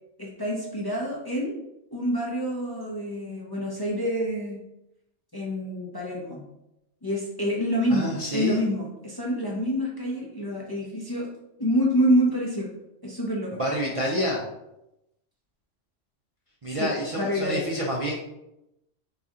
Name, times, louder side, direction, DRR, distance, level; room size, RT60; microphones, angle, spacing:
voice 1, 0.2-1.6 1.9-4.6 5.3-6.5 7.0-11.3 11.6-12.7 13.0-13.6 16.7-16.9 17.2-17.7, equal, 25° left, -3 dB, 0.6 m, -27 dB
voice 2, 7.9-8.6 13.5-14.4 16.6-18.1, equal, 40° right, -5 dB, 0.5 m, -28 dB
4.1 x 3.4 x 3.6 m, 0.88 s
omnidirectional pair, 1.3 m